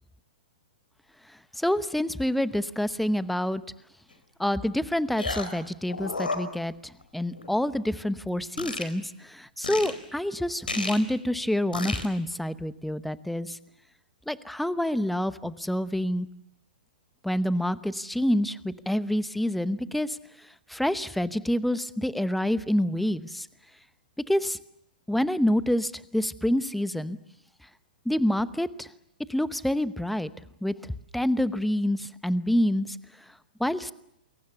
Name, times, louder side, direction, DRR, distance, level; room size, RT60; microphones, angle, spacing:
voice 1, 1.6-3.6 4.4-6.7 7.1-13.6 14.3-16.3 17.2-20.2 20.7-23.5 24.3-24.6 25.1-27.2 28.1-28.9 29.3-30.3 30.6-30.7 31.1-32.9 33.6-33.9, left 1 dB, ahead, 16 dB, 0.9 m, -27 dB
sound 1, 4.1-4.2 5.2-5.6 5.9-7.0 7.3-7.5 8.6-8.8 9.6-9.9 10.7-11.0 11.7-12.1, left 3 dB, 85° left, 4.2 m, -31 dB
28.5 x 22.5 x 7.0 m, 0.79 s
figure-of-eight pair, 115°, 5 cm